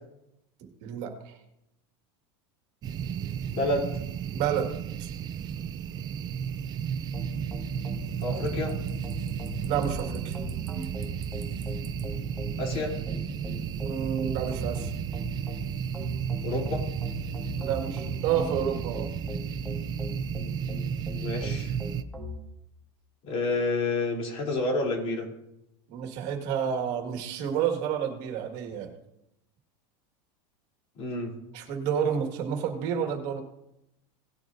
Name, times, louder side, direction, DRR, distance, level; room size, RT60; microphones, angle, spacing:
voice 1, 0.8-1.3 4.3-4.7 5.0-5.1 9.6-10.4 13.8-14.9 17.6-19.1 25.9-28.9 31.5-33.4, right 8 dB, 55° right, 3 dB, 1.9 m, -30 dB
sound 1, 2.8-22.0, right 8 dB, 30° right, 0.5 m, -33 dB
voice 2, 3.5-3.9 8.2-8.7 12.6-12.9 16.4-16.8 21.2-21.7 23.3-25.3 31.0-31.3, left 2 dB, 45° left, 0 dB, 3.3 m, -29 dB
sound 2, 7.1-22.4, left 1 dB, 5° left, 1.8 m, -39 dB
18.0 x 9.2 x 2.7 m, 0.85 s
supercardioid pair, 140°, 14 cm